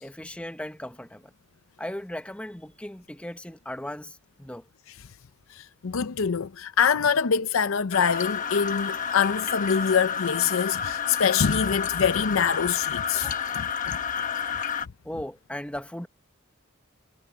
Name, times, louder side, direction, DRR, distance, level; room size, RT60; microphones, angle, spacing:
voice 1, 0.0-1.3 1.8-4.7 13.1-13.5 15.0-16.1, left 1 dB, 5° left, 1.1 m, -37 dB
voice 2, 5.5-14.0, left 6 dB, 85° left, 0.6 m, -25 dB
sound 1, 7.9-14.9, left 7 dB, 40° left, 1.2 m, -30 dB
head